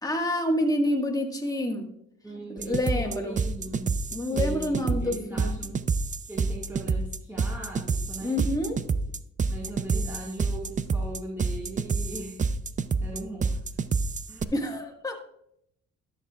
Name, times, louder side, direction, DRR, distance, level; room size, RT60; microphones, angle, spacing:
voice 1, 0.0-1.9 2.6-3.4 4.1-5.6 8.2-8.8 14.5-15.1, left 1 dB, 10° left, 1 dB, 1.7 m, -28 dB
voice 2, 2.2-4.0 4.3-5.8 6.2-8.4 9.5-12.4 13.0-13.6 14.3-14.5, right 2 dB, 10° right, -4 dB, 1.8 m, -39 dB
sound 1, 2.6-14.4, right 4 dB, 25° right, 0.4 m, -28 dB
12.5 x 6.9 x 2.4 m, 0.71 s
cardioid pair, 90°, 30 cm